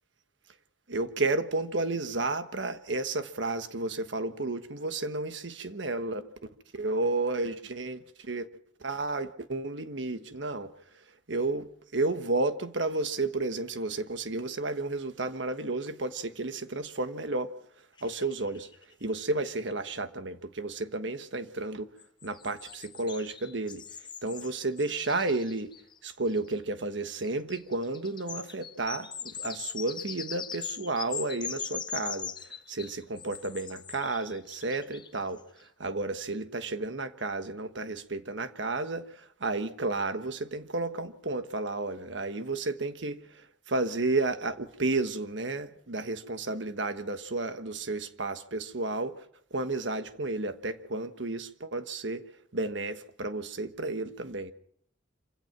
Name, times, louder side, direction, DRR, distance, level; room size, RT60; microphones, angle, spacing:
voice 1, 0.9-8.5 8.8-10.7 11.3-17.5 18.0-18.7 19.0-21.9 22.2-23.8 24.2-25.7 26.0-52.2 52.5-54.5, right 2 dB, 70° right, 1.4 m, -32 dB
sound 1, 18.0-19.0 19.4-19.5 19.7-19.8 22.0-26.5 27.2-35.4, left 7 dB, 25° left, 0.8 m, -41 dB
26.5 x 16.5 x 6.0 m
head